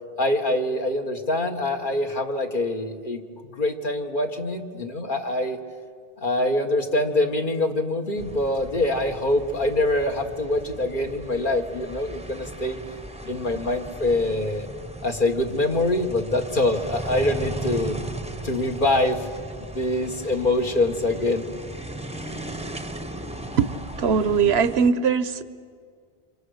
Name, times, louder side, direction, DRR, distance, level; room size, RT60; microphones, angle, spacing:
voice 1, 0.2-3.2 3.5-5.6 6.2-12.8 13.2-14.7 15.0-18.0 18.4-19.3 19.6-21.4, left 1 dB, 55° left, 3 dB, 1.8 m, -24 dB
sound 1, 8.2-24.9, right 2 dB, 5° right, 0.8 m, -37 dB
voice 2, 24.0-25.4, right 6 dB, 80° right, 13 dB, 1.1 m, -20 dB
28.5 x 26.5 x 6.6 m, 2.1 s
omnidirectional pair, 1.0 m